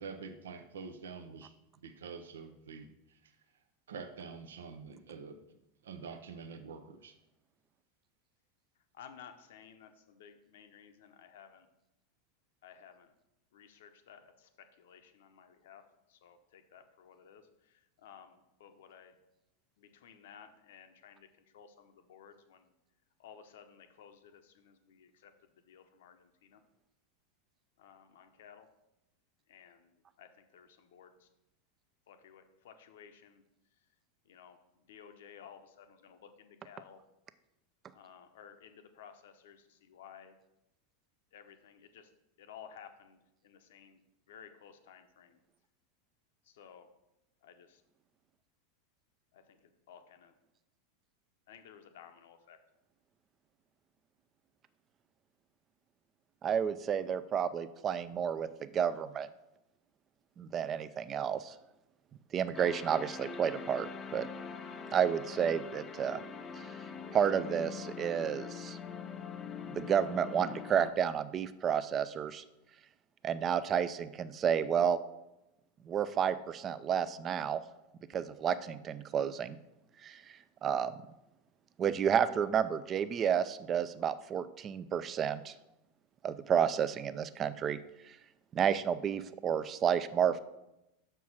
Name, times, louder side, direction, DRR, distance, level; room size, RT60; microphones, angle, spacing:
voice 1, 0.0-1.5 1.8-3.3 3.9-5.4 5.8-7.2, right 5 dB, 75° right, 9 dB, 0.6 m, -46 dB
voice 2, 8.9-11.7 12.6-13.1 13.5-15.8 16.1-19.2 19.8-21.3 21.5-22.7 23.2-25.3 25.7-26.6 27.8-28.7 29.5-31.3 32.1-33.4 34.3-37.0 37.9-40.4 41.3-42.1 42.4-44.0 44.3-45.4 46.4-46.9 47.4-47.8 49.3-50.3 51.5-52.6, left 8 dB, 70° left, 8 dB, 0.8 m, -55 dB
voice 3, 56.4-59.3 60.4-61.5 62.3-64.3 64.9-66.2 67.1-68.8 69.7-72.4 73.2-75.0 75.8-77.6 78.1-79.6 80.0-80.2 80.6-81.0 81.8-85.5 86.2-87.8 88.5-90.4, right 8 dB, 35° right, 14 dB, 0.5 m, -31 dB
sound 1, 62.5-70.9, left 6 dB, 30° left, 0.6 m, -43 dB
6.2 x 4.6 x 5.9 m, 0.90 s
hypercardioid pair, 90°, 0 cm